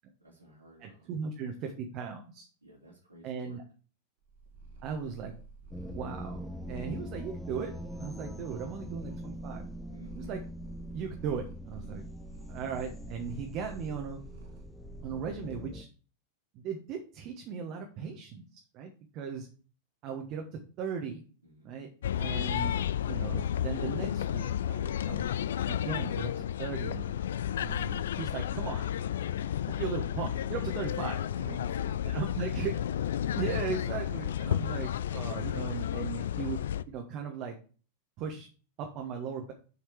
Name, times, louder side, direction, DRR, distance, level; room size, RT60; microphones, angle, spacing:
voice 1, 0.2-1.1 2.6-3.6 9.9-10.2 17.9-18.2 21.4-21.8 27.4-27.7 31.3-32.5, right 1 dB, 85° right, -7 dB, 3.0 m, -55 dB
voice 2, 0.8-2.5 3.2-3.6 4.8-5.3 5.8-7.7 8.0-9.6 10.2-10.4 10.9-12.1 12.5-14.2 15.0-15.9 16.5-19.5 20.0-21.2 21.6-21.9 22.2-22.8 23.1-25.3 25.7-27.1 27.6-28.8 29.8-31.6 32.0-32.7 33.3-36.6 36.9-37.5 38.2-38.5 38.8-39.5, right 6 dB, 40° right, 2 dB, 1.2 m, -37 dB
Purr, 4.3-15.6, right 3 dB, 55° right, 1.8 m, -48 dB
sound 1, 5.7-15.8, left 1 dB, 10° left, 0.8 m, -43 dB
sound 2, 22.0-36.8, left 10 dB, 60° left, 0.4 m, -32 dB
7.0 x 5.0 x 4.8 m, 0.37 s
figure-of-eight pair, 90°, 0 cm